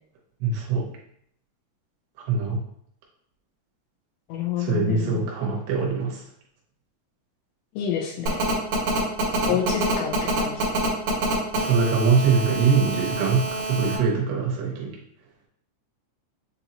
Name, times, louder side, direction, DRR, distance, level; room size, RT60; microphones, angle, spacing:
voice 1, 0.4-0.9 2.3-2.6 4.6-6.2 9.3-9.6 11.5-14.9, right 5 dB, 75° right, -2 dB, 2.8 m, -23 dB
voice 2, 4.3-5.3 7.8-8.4 9.5-10.7, left 9 dB, 80° left, -1 dB, 2.6 m, -28 dB
Telephone, 8.3-14.0, right 4 dB, 60° right, 2.2 m, -27 dB
7.0 x 2.7 x 2.8 m, 0.70 s
omnidirectional pair, 5.2 m